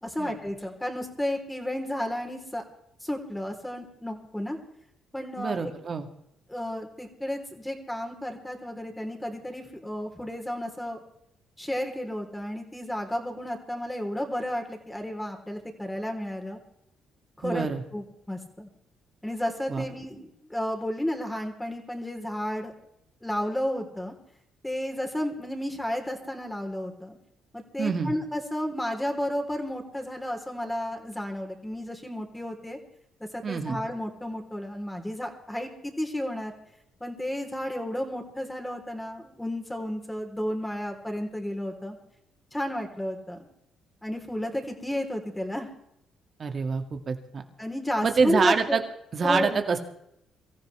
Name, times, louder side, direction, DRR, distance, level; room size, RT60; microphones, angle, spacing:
voice 1, 0.0-2.6 3.0-4.6 5.1-5.7 6.5-11.0 11.6-16.6 17.4-17.7 17.9-18.7 19.2-22.7 23.2-24.1 24.6-27.2 27.5-32.8 33.3-36.5 37.0-42.0 42.5-43.5 44.0-45.7 47.6-48.8 49.2-49.6, left 1 dB, 10° left, 3 dB, 3.7 m, -32 dB
voice 2, 5.4-6.1 17.4-17.8 19.7-19.9 27.8-28.1 33.4-33.8 46.4-47.5 48.0-48.8 49.1-49.8, right 5 dB, 50° right, 5 dB, 2.2 m, -26 dB
24.0 x 14.5 x 3.5 m, 0.78 s
hypercardioid pair, 55°, 0 cm